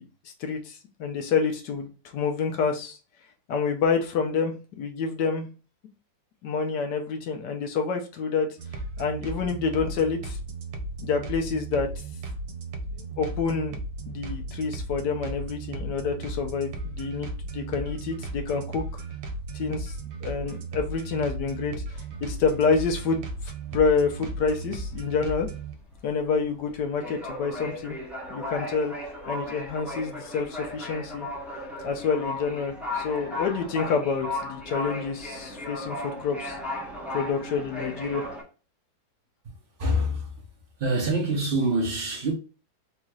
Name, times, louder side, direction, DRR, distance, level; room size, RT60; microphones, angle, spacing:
voice 1, 0.0-3.0 3.5-5.4 6.4-10.4 11.0-11.9 12.9-13.8 14.1-19.0 19.5-25.5 26.0-28.0 28.3-28.9 29.3-31.3 31.8-36.6 37.1-38.2, left 5 dB, 65° left, 1.3 m, -28 dB
sound 1, 8.6-25.7, right 3 dB, 75° right, 1.4 m, -36 dB
sound 2, 22.1-23.3 23.7-23.9 24.2-38.4, left 1 dB, ahead, 0.7 m, -36 dB
voice 2, 39.4-40.4 40.8-42.3, right 1 dB, 50° right, 0.7 m, -26 dB
4.2 x 3.0 x 2.3 m
omnidirectional pair, 2.1 m